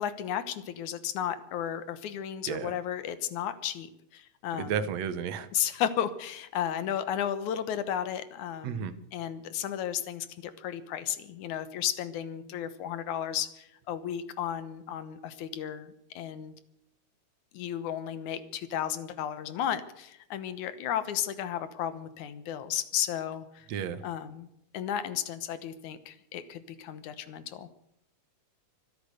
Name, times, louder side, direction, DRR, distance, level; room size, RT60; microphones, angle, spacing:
voice 1, 0.0-4.8 5.5-16.5 17.5-23.7 24.0-24.5 24.7-27.7, left 10 dB, 80° left, 13 dB, 2.5 m, -34 dB
voice 2, 4.6-5.5 8.6-8.9 23.7-24.0, right 7 dB, 70° right, 13 dB, 2.1 m, -32 dB
24.5 x 8.6 x 6.6 m, 0.79 s
omnidirectional pair, 3.4 m